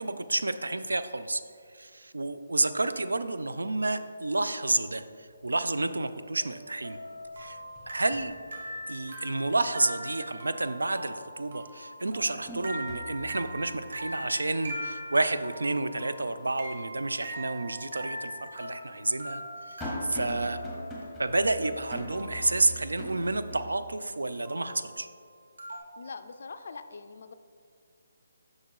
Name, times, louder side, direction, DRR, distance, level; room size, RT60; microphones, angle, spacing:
voice 1, 0.0-1.4 1.7-7.0 7.4-7.6 7.9-8.4 8.9-19.4 19.7-20.6 21.2-25.1, right 2 dB, 85° right, 11 dB, 0.3 m, -30 dB
sound 1, 5.3-5.5 5.9-6.7 7.0-9.2 9.6-9.7 11.2-11.3 11.8-16.9 17.3-17.4 18.3-23.7, equal, ahead, 1.1 m, -42 dB
sound 2, 6.3-22.8 24.4-25.0 25.6-25.8, equal, 70° right, 1.2 m, -42 dB
voice 2, 26.0-27.3, left 4 dB, 60° left, 9 dB, 0.3 m, -43 dB
6.2 x 3.7 x 4.6 m, 2.2 s
figure-of-eight pair, 155°, 0 cm